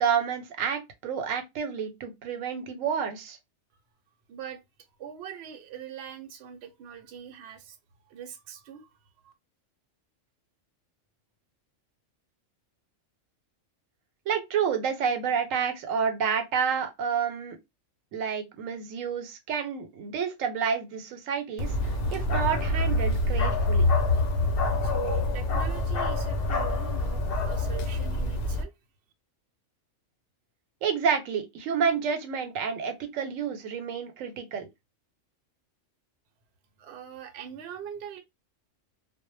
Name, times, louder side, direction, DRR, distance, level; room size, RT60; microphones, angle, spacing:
voice 1, 0.0-3.4 14.3-17.6 18.1-21.7 22.1-23.9 30.8-34.7, right 7 dB, 85° right, 1.0 m, -29 dB
voice 2, 4.3-4.6 5.0-7.8 8.1-8.9 9.2-9.3 24.8-28.7 36.8-38.2, right 8 dB, 65° right, 0.8 m, -42 dB
Bark, 21.6-28.6, left 2 dB, 60° left, 0.7 m, -26 dB
2.1 x 2.1 x 3.0 m
omnidirectional pair, 1.3 m